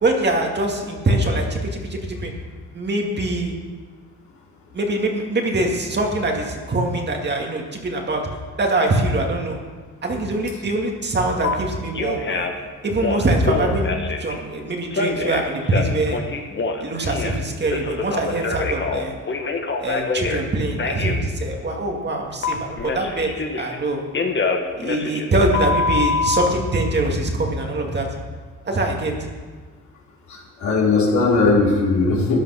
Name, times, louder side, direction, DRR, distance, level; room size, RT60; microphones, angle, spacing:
voice 1, 0.0-2.3 2.7-3.5 4.7-8.2 8.6-9.6 10.0-12.5 12.8-16.2 16.8-19.1 19.8-24.0 24.8-28.1 28.6-29.1, right 2 dB, 35° right, 1 dB, 2.2 m, -23 dB
Telephone, 11.4-11.5 11.9-12.6 13.0-14.3 14.9-17.4 17.7-20.4 20.8-21.2 22.4-23.8 24.1-26.5, left 4 dB, 40° left, 1.5 m, -25 dB
voice 2, 30.3-32.4, left 3 dB, 70° left, -4 dB, 3.8 m, -18 dB
13.0 x 9.3 x 5.8 m, 1.5 s
cardioid pair, 90°, 30 cm